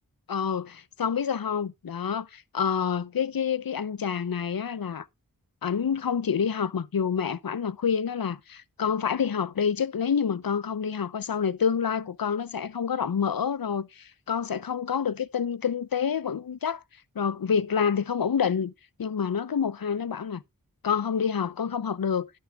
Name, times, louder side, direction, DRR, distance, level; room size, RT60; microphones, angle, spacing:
voice 1, 0.3-5.1 5.6-16.8 17.2-18.7 19.0-20.4 20.8-22.3, left 7 dB, 80° left, 0.7 m, -28 dB
11.5 x 6.0 x 3.5 m
wide cardioid pair, 60°, 35 cm